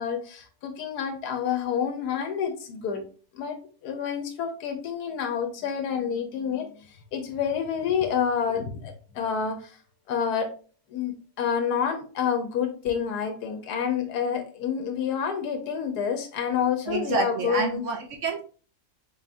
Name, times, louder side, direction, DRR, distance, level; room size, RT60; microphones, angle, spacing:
voice 1, 0.0-3.0 3.3-6.9 7.1-9.8 10.1-10.5 10.9-17.8, left 7 dB, 90° left, 5 dB, 1.2 m, -28 dB
voice 2, 16.9-18.4, right 4 dB, 65° right, 3 dB, 0.8 m, -28 dB
4.0 x 3.5 x 2.5 m, 0.39 s
omnidirectional pair, 1.7 m